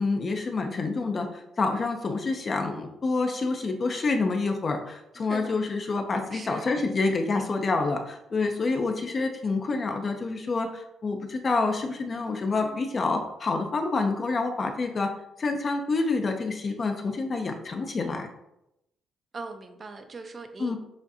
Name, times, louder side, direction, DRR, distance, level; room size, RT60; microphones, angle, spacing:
voice 1, 0.0-15.1 15.4-18.3 20.6-20.8, left 3 dB, 40° left, 4 dB, 0.6 m, -27 dB
voice 2, 5.2-5.6 6.3-6.7 12.6-12.9 19.3-20.8, right 3 dB, 40° right, 7 dB, 0.6 m, -40 dB
7.0 x 2.5 x 2.7 m, 0.85 s
cardioid pair, 90°, 0 cm